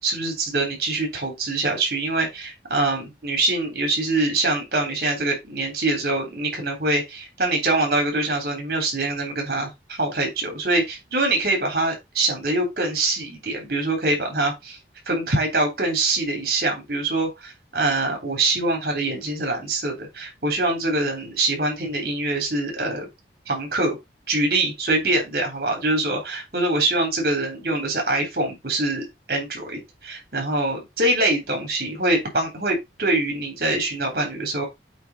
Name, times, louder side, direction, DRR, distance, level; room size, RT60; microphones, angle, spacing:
voice 1, 0.0-14.8 15.1-23.1 23.5-24.0 24.3-34.7, right 2 dB, 55° right, 3.5 m, -24 dB
8.2 x 3.9 x 5.5 m
head